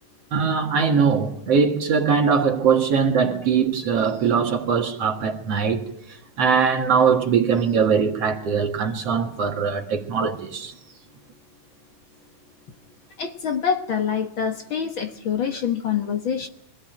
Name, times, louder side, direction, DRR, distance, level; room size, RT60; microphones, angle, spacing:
voice 1, 0.3-5.9 6.4-10.7, right 6 dB, 55° right, 2.5 m, -21 dB
voice 2, 13.2-16.5, left 7 dB, 60° left, 1.4 m, -25 dB
24.5 x 17.0 x 9.1 m
omnidirectional pair, 3.7 m